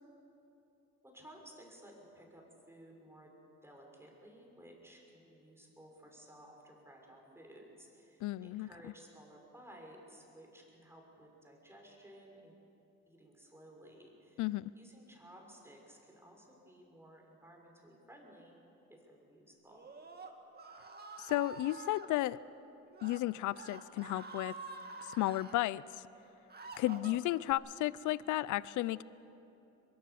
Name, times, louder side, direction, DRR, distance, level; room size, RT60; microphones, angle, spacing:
voice 1, 1.0-3.3 3.6-12.5 13.1-18.6 18.9-19.9, right 1 dB, 10° right, 0 dB, 5.9 m, -56 dB
voice 2, 8.2-8.7 14.4-14.7 21.2-22.4 23.0-24.6 25.1-26.0 26.8-29.0, left 16 dB, 80° left, 19 dB, 0.5 m, -33 dB
Screaming, 19.7-22.1 22.9-23.2 23.5-25.6 26.1-27.5, right 3 dB, 30° right, 2.3 m, -48 dB
23.5 x 22.5 x 7.0 m, 3.0 s
cardioid pair, 90°, 30 cm